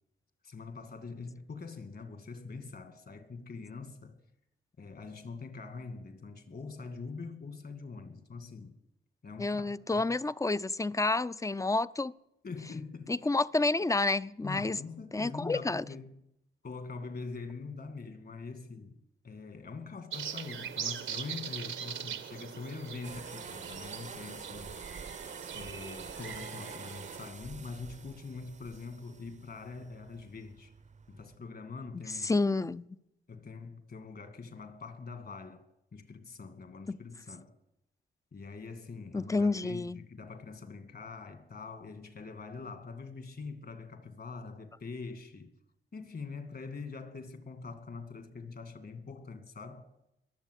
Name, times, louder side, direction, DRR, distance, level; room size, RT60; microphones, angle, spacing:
voice 1, 0.4-4.2 4.8-8.8 9.2-10.1 12.4-13.1 14.4-16.2 16.6-24.8 25.5-30.7 31.1-32.4 33.3-35.7 35.9-37.6 38.3-45.5 45.9-49.9, left 4 dB, 55° left, 2.4 m, -44 dB
voice 2, 9.4-12.1 13.1-14.8 15.1-15.8 32.1-32.9 36.9-37.0 39.1-40.0, left 3 dB, 15° left, 0.5 m, -29 dB
sound 1, 20.1-27.3, right 8 dB, 85° right, 1.3 m, -41 dB
sound 2, 23.0-31.4, right 5 dB, 35° right, 0.7 m, -47 dB
22.0 x 7.4 x 8.2 m
cardioid pair, 70°, 20 cm